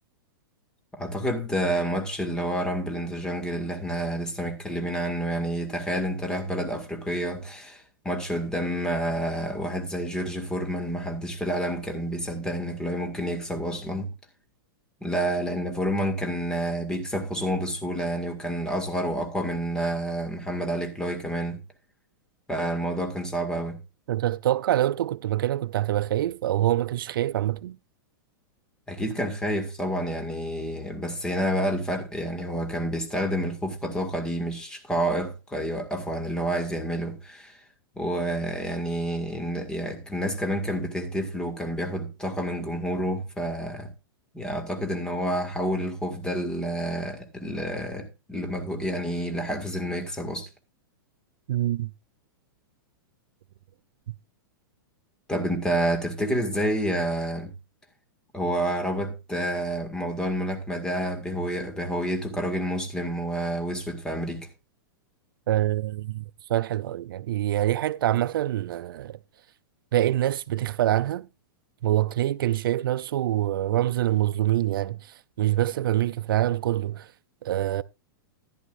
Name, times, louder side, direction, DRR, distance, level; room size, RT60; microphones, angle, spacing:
voice 1, 1.0-14.1 15.0-21.6 22.5-23.8 28.9-37.6 38.0-43.9 44.3-50.5 55.3-57.5 58.3-64.5, right 1 dB, 5° left, 1.9 m, -29 dB
voice 2, 24.1-27.8 51.5-51.9 54.1-54.2 65.5-66.2 66.5-69.2 69.9-71.3 71.8-77.1 77.4-77.8, right 13 dB, 70° right, 0.5 m, -25 dB
14.5 x 11.0 x 2.5 m
hypercardioid pair, 150°, 12 cm